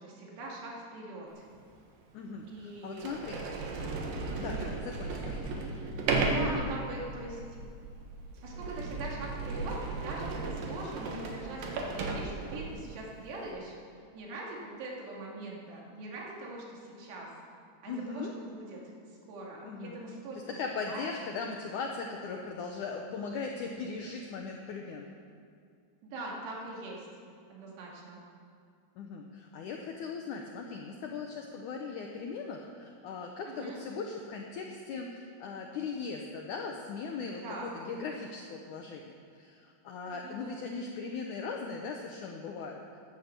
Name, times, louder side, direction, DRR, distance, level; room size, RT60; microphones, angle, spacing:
voice 1, 0.0-1.4 2.5-3.1 4.2-4.7 6.3-7.4 8.4-13.7 14.1-17.3 17.8-20.6 20.9-21.3 26.0-27.1 27.5-28.2 33.5-33.8 37.4-37.8 40.1-40.5, right 2 dB, 85° right, -3 dB, 4.6 m, -42 dB
Sliding door, 1.5-1.6 2.4-2.5 2.9-12.9, right 3 dB, 65° right, 2.9 m, -35 dB
voice 2, 2.1-3.4 4.4-5.8 17.9-18.3 19.6-20.0 20.5-25.0 29.0-42.8, left 4 dB, 80° left, 2 dB, 1.8 m, -39 dB
16.0 x 9.9 x 6.7 m, 2.3 s
omnidirectional pair, 4.7 m